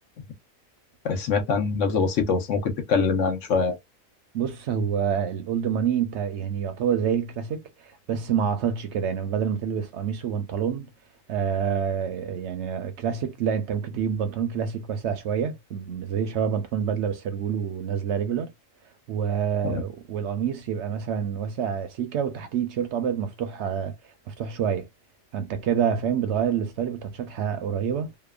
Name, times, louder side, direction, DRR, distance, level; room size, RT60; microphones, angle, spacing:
voice 1, 1.0-3.8 19.6-19.8, left 5 dB, 70° left, 1.1 m, -24 dB
voice 2, 4.3-10.9 11.3-18.5 19.1-24.0 24.3-24.9 25.3-28.1, right 8 dB, 65° right, 0.8 m, -27 dB
2.9 x 2.1 x 2.2 m
omnidirectional pair, 1.4 m